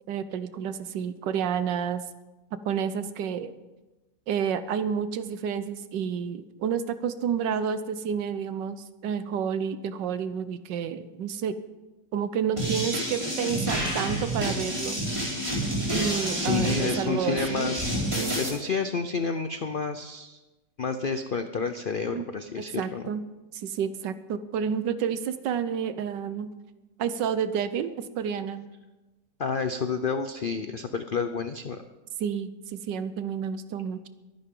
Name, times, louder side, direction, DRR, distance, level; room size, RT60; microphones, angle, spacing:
voice 1, 0.1-2.0 2.5-3.5 4.3-11.5 12.1-15.0 15.9-17.7 18.1-18.4 22.1-22.2 22.8-23.2 23.5-26.5 27.0-28.7 32.2-34.1, right 7 dB, 80° right, 12 dB, 1.5 m, -30 dB
sound 1, 12.6-18.5, right 1 dB, 15° right, 4.3 m, -29 dB
voice 2, 16.3-17.9 18.4-20.4 20.8-23.0 29.4-31.8, left 5 dB, 80° left, 8 dB, 0.4 m, -30 dB
23.0 x 10.5 x 3.8 m, 1.1 s
omnidirectional pair, 1.9 m